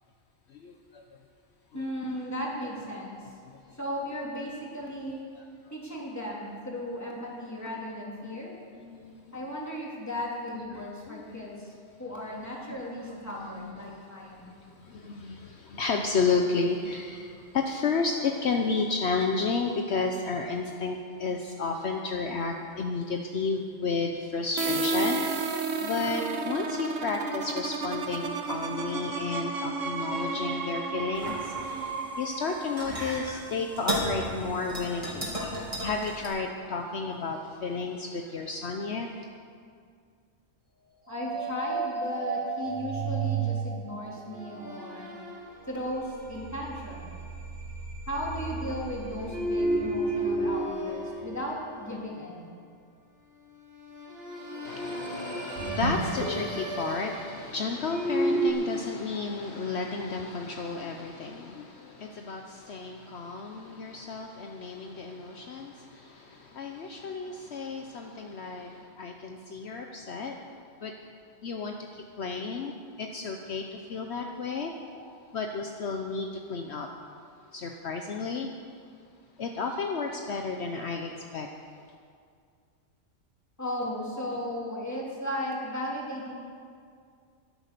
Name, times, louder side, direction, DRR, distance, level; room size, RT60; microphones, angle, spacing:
voice 1, 0.5-1.0 1.7-1.8 3.7-3.8 5.4-5.5 8.8-9.2 10.6-11.5 13.2-13.9 14.4-39.3 54.6-70.4 70.8-70.9 71.4-74.7 75.3-76.9 77.5-78.5 79.4-81.5, left 4 dB, 65° left, 3 dB, 1.1 m, -32 dB
voice 2, 1.7-3.3 3.8-5.2 5.7-8.5 9.3-11.7 12.0-14.5 19.7-19.8 41.1-45.2 45.7-47.1 48.1-52.5 68.1-68.2 74.6-75.1 83.6-86.3, equal, 15° left, -4 dB, 3.1 m, -36 dB
sound 1, 24.6-34.2, right 3 dB, 90° right, 1.4 m, -32 dB
sound 2, 31.1-36.3, equal, 25° right, 3.1 m, -35 dB
sound 3, 41.1-52.2 53.7-58.5, right 2 dB, 55° right, 3.5 m, -32 dB
14.0 x 11.5 x 6.8 m, 2.2 s
omnidirectional pair, 1.3 m